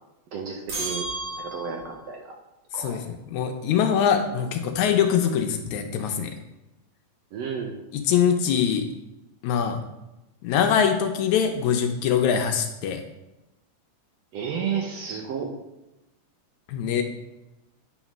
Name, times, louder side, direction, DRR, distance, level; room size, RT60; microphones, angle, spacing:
voice 1, 0.3-1.1 1.4-2.4 2.7-3.0 7.3-7.8 14.3-15.5, right 6 dB, 70° right, 2 dB, 1.7 m, -32 dB
sound 1, 0.7-2.1, right 2 dB, 40° right, 3.0 m, -33 dB
voice 2, 2.8-6.3 7.9-8.9 9.4-9.8 10.4-13.0 16.7-17.0, left 8 dB, 75° left, 5 dB, 2.0 m, -23 dB
9.0 x 4.2 x 6.0 m, 0.98 s
omnidirectional pair, 3.6 m